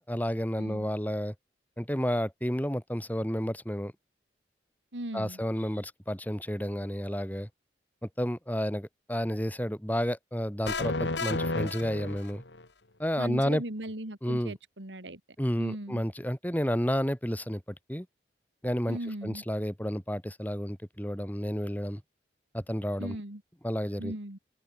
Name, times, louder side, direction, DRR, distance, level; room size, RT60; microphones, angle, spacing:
voice 1, 0.0-1.3 1.8-3.9 5.1-7.5 8.0-12.4 13.0-13.6 14.2-14.5 15.4-17.6 17.9-18.1 18.6-22.0 22.5-23.2 23.6-24.1, equal, 10° left, 5.2 m, -31 dB
voice 2, 0.6-0.9 4.9-5.4 13.2-15.2 15.6-16.0 18.9-19.4 23.0-23.4 24.0-24.4, right 1 dB, 90° right, 3.3 m, -38 dB
sound 1, 10.6-12.6, left 2 dB, 85° left, 3.1 m, -32 dB
open air
head